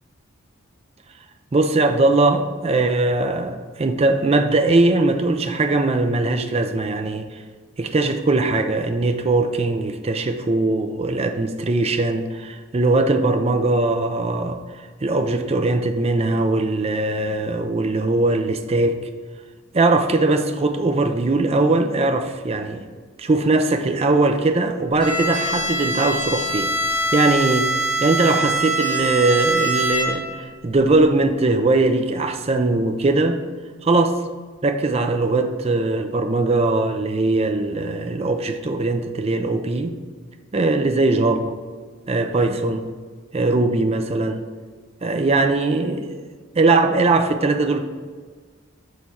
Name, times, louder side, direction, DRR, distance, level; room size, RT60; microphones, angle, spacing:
voice 1, 1.5-7.4 7.8-19.0 19.7-22.9 23.2-26.7 27.1-27.7 28.0-33.4 33.8-34.2 34.6-39.9 40.5-41.5 42.1-42.8 43.3-44.4 45.0-46.2 46.5-47.8, right 2 dB, 30° right, 6 dB, 0.5 m, -20 dB
Bowed string instrument, 25.0-30.4, right 1 dB, 25° left, 1.3 m, -23 dB
6.6 x 4.1 x 4.4 m, 1.5 s
head